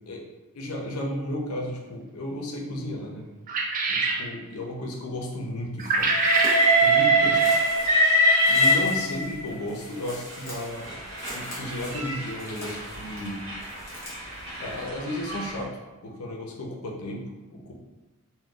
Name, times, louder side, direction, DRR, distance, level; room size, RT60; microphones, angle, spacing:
voice 1, 0.5-3.3 3.9-6.2 6.8-7.4 8.5-11.0 11.3-13.4 14.6-15.7 16.0-17.3 17.5-17.7, left 1 dB, 90° left, 0 dB, 0.6 m, -33 dB
sound 1, 3.5-4.2 5.8-6.6, right 3 dB, 40° right, 0.3 m, -25 dB
sound 2, 5.8-14.8, equal, 10° left, 0.8 m, -43 dB
Train, 6.0-9.4 10.3-15.5, right 1 dB, 55° right, 0.9 m, -24 dB
3.6 x 2.2 x 2.3 m, 1.1 s
head